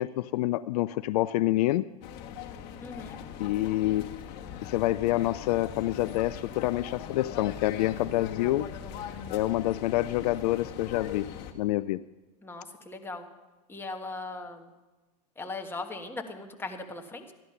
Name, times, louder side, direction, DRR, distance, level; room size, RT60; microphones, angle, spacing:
voice 1, 0.0-1.9 3.4-4.2 4.6-8.7 9.3-12.0, left 16 dB, 70° left, 16 dB, 0.4 m, -27 dB
sound 1, 2.0-11.5, left 8 dB, 50° left, 1.4 m, -40 dB
voice 2, 2.8-3.2 12.4-13.3 13.7-14.7 15.4-17.3, left 3 dB, 10° left, 3 dB, 1.4 m, -39 dB
13.5 x 11.0 x 5.8 m, 1.2 s
hypercardioid pair, 110°, 21 cm